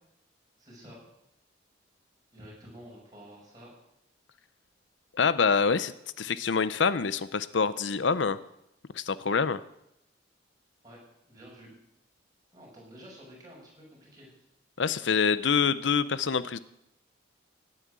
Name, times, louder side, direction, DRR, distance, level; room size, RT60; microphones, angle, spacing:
voice 1, 0.6-1.0 2.3-3.7 5.6-5.8 6.4-6.5 9.2-9.3 10.8-11.0 11.3-11.7 12.5-14.4, equal, 20° right, -4 dB, 7.0 m, -50 dB
voice 2, 5.1-5.9 6.2-8.4 8.9-9.6 14.8-16.6, left 5 dB, 75° left, 16 dB, 0.6 m, -26 dB
17.0 x 9.9 x 8.1 m, 0.80 s
head